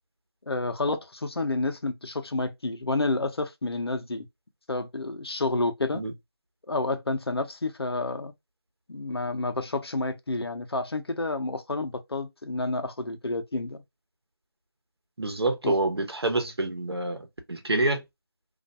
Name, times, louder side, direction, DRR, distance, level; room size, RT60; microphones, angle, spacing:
voice 1, 0.5-4.3 4.7-6.0 6.7-8.3 8.9-13.8 15.6-15.8, left 2 dB, 80° left, 0.7 m, -29 dB
voice 2, 15.2-18.0, right 2 dB, 90° right, 0.9 m, -27 dB
2.5 x 2.1 x 2.5 m
figure-of-eight pair, 180°, 13 cm